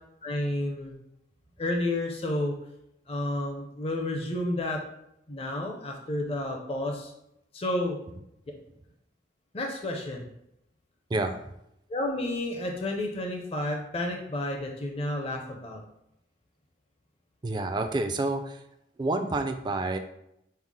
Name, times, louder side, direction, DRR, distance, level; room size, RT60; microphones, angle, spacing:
voice 1, 0.2-0.9 1.6-2.5 3.1-4.8 5.3-7.1 7.5-8.0 9.5-10.2 11.9-15.8, left 1 dB, 30° left, 1 dB, 0.5 m, -31 dB
voice 2, 17.4-18.6 19.0-20.0, right 2 dB, 25° right, 7 dB, 0.3 m, -28 dB
5.5 x 2.0 x 4.7 m, 0.80 s
head